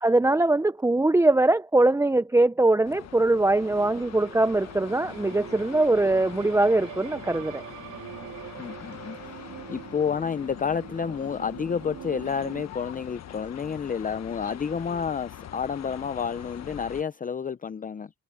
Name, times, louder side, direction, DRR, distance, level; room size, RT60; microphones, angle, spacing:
voice 1, 0.0-7.6, right 2 dB, 10° right, 0.7 m, -22 dB
sound 1, 2.8-17.0, left 10 dB, 60° left, 1.5 m, -43 dB
sound 2, 3.5-12.6, right 13 dB, 85° right, 3.5 m, -43 dB
voice 2, 8.6-18.1, left 6 dB, 25° left, 0.7 m, -30 dB
cardioid pair, 90°, 30 cm